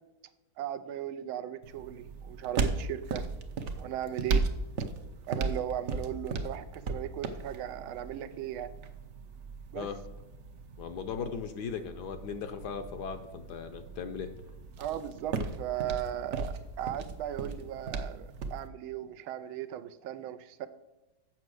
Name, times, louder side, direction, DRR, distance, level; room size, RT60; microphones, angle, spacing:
voice 1, 0.6-3.2 3.8-4.5 5.3-8.7 9.7-9.9 14.8-20.7, right 11 dB, 90° right, 12 dB, 1.5 m, -37 dB
sound 1, 1.6-18.7, right 4 dB, 65° right, 0.7 m, -37 dB
voice 2, 10.8-14.3, left 6 dB, 70° left, 8 dB, 1.1 m, -38 dB
7.8 x 6.0 x 6.2 m, 1.1 s
omnidirectional pair, 2.2 m